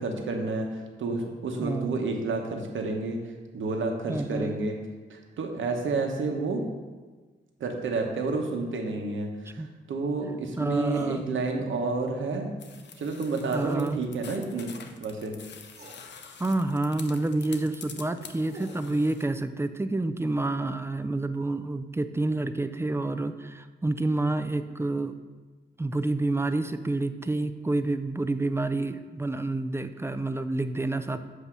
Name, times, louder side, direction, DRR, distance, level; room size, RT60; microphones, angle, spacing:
voice 1, 0.0-3.2 3.5-4.8 5.1-6.6 7.6-12.5 13.0-14.7 15.0-15.3, right 3 dB, 75° right, 2 dB, 1.0 m, -30 dB
voice 2, 1.6-2.0 4.1-4.5 9.6-9.7 10.6-11.2 13.5-14.0 16.4-25.2 25.8-31.2, right 2 dB, 10° right, 10 dB, 0.4 m, -28 dB
sound 1, 10.9-11.2 13.5-13.8 15.1-15.2 15.7-16.0 18.0-18.9, right 3 dB, 35° right, 1.1 m, -49 dB
sound 2, 12.6-19.2, left 6 dB, 60° left, 0.7 m, -46 dB
7.8 x 2.8 x 6.0 m, 1.3 s
cardioid pair, 65°, 20 cm